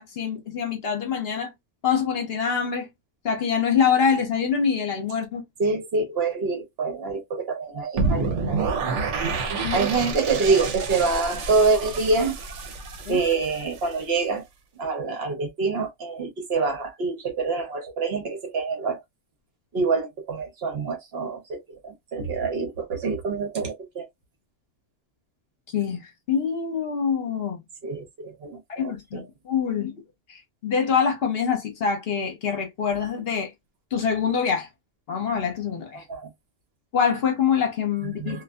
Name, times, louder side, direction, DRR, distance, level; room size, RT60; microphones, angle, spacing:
voice 1, 0.0-1.5 1.8-2.9 3.2-5.4 9.6-9.9 13.0-13.2 25.7-27.6 28.7-30.0 30.3-33.5 33.9-34.7 35.1-36.0 36.9-38.4, left 7 dB, 60° left, 1.0 m, -25 dB
voice 2, 5.6-8.6 9.7-12.4 13.1-14.4 14.8-19.0 19.7-24.1 27.8-29.2 36.1-36.3 38.2-38.4, right 4 dB, 60° right, 0.9 m, -26 dB
sound 1, 8.0-14.0, right 4 dB, 80° right, 0.9 m, -28 dB
2.5 x 2.4 x 2.2 m
omnidirectional pair, 1.2 m